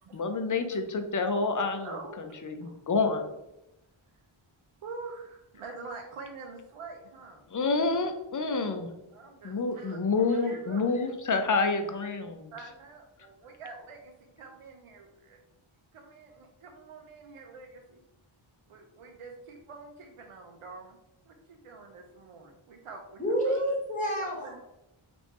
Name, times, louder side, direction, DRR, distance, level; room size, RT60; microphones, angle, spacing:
voice 1, 0.1-3.2 7.5-8.9 9.4-12.5, left 4 dB, 40° left, 6 dB, 0.5 m, -28 dB
voice 2, 1.8-2.2 2.6-2.7 4.8-7.4 9.1-11.1 12.5-15.4 15.9-18.0 18.7-21.0 21.3-23.6 24.2-24.5, right 4 dB, 90° right, 2 dB, 0.6 m, -46 dB
voice 3, 23.2-24.6, equal, 15° left, -4 dB, 1.2 m, -29 dB
3.3 x 2.5 x 3.1 m, 0.91 s
wide cardioid pair, 65°, 50 cm